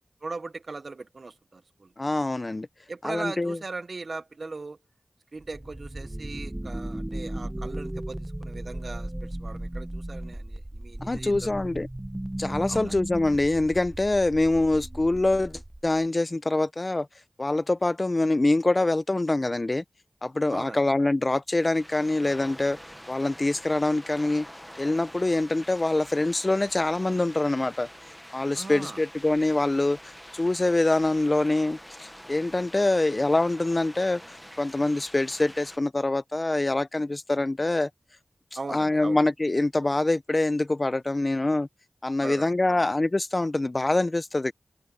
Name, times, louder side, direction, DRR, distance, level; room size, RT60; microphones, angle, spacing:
voice 1, 0.2-1.9 2.9-4.8 5.3-11.6 12.7-12.9 20.5-20.8 28.5-29.0 38.6-39.2 42.2-42.9, right 3 dB, 65° right, 0.9 m, -39 dB
voice 2, 2.0-2.7 3.0-3.6 11.0-11.9 12.4-17.1 17.4-19.8 20.2-22.8 23.1-24.5 24.8-27.9 28.3-37.9 38.7-41.7 42.0-44.5, left 2 dB, 40° left, 0.8 m, -25 dB
sound 1, 5.4-16.0, right 1 dB, 20° right, 1.1 m, -36 dB
sound 2, 21.7-35.8, equal, 5° left, 1.5 m, -46 dB
cardioid pair, 45°, 0 cm